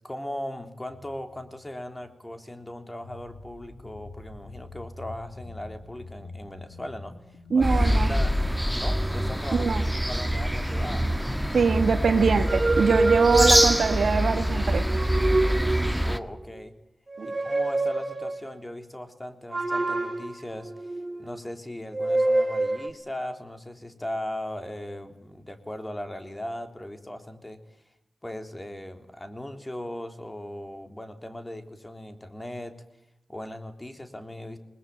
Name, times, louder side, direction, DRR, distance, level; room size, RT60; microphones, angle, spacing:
voice 1, 0.0-8.4 8.7-9.8 10.1-11.1 16.0-16.7 17.2-27.6 28.2-32.7 33.3-34.6, left 1 dB, 20° left, 7 dB, 3.5 m, -38 dB
sound 1, 0.8-9.3, left 2 dB, 70° left, 7.0 m, -46 dB
voice 2, 7.5-8.1 9.5-9.8 11.5-14.8 17.2-17.3, right 5 dB, 70° right, 10 dB, 1.4 m, -23 dB
sound 2, 7.6-16.2, equal, 5° right, 1.6 m, -25 dB
sound 3, 12.4-14.2 14.8-16.1 17.1-18.4 19.5-21.4 21.9-22.9, right 2 dB, 40° right, 2.1 m, -26 dB
21.0 x 20.5 x 9.1 m, 0.83 s
cardioid pair, 45°, 0 cm